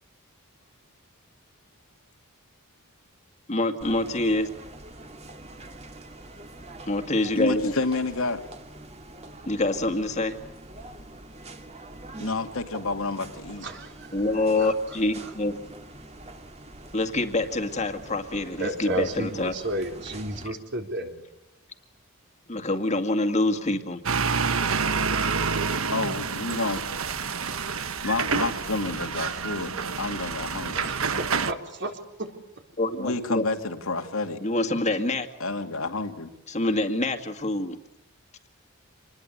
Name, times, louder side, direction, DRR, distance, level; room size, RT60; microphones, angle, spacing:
voice 1, 3.5-4.5 6.9-7.7 9.5-10.4 14.1-15.6 16.9-19.5 22.5-24.0 32.8-33.5 34.4-35.3 36.5-37.8, left 2 dB, 35° left, 7 dB, 2.1 m, -26 dB
sound 1, 3.8-20.5, right 2 dB, 30° right, 2.3 m, -45 dB
voice 2, 7.4-8.4 12.2-13.7 25.9-26.9 28.0-30.9 33.0-34.4 35.4-36.3, left 3 dB, 80° left, 4 dB, 2.5 m, -29 dB
voice 3, 13.6-14.2 14.6-14.7 15.2-15.3 18.6-21.2 30.7-32.3, right 1 dB, 55° right, 3 dB, 4.0 m, -32 dB
sound 2, 24.0-31.5, right 5 dB, 80° right, 1.3 m, -28 dB
27.0 x 21.0 x 8.2 m, 0.94 s
head